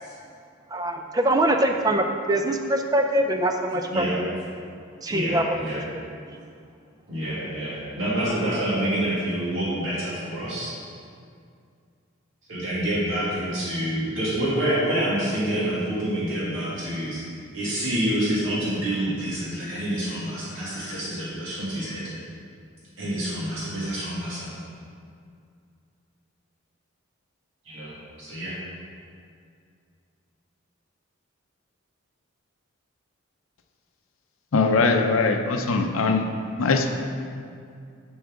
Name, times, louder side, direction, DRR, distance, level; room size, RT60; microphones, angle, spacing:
voice 1, 0.7-4.1 5.0-5.6, right 1 dB, 15° right, 5 dB, 0.4 m, -23 dB
voice 2, 5.1-5.8 7.1-10.7 12.5-17.2 17.5-22.1 23.0-24.5 27.7-28.6, right 1 dB, 65° right, -8 dB, 1.9 m, -27 dB
voice 3, 34.5-36.2 36.6-36.9, left 4 dB, 75° left, 4 dB, 0.6 m, -21 dB
7.1 x 7.1 x 3.7 m, 2.3 s
head